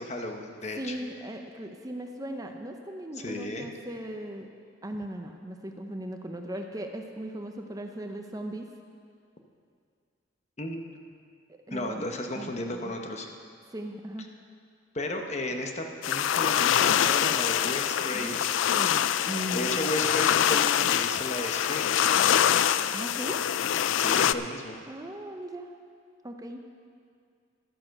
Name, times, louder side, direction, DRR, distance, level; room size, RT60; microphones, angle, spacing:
voice 1, 0.0-1.0 3.2-3.7 10.6-10.8 11.7-13.3 14.9-18.5 19.5-22.0 24.0-24.8, left 1 dB, 35° left, 4 dB, 1.0 m, -34 dB
voice 2, 0.8-4.5 4.8-8.7 11.5-12.0 12.3-12.9 13.7-14.3 18.1-18.4 18.7-19.7 22.9-23.4 24.9-25.7 26.2-26.6, right 1 dB, 20° right, 4 dB, 0.6 m, -38 dB
sound 1, 16.0-24.3, left 10 dB, 85° left, 0.3 m, -25 dB
12.0 x 9.4 x 6.4 m, 2.2 s
head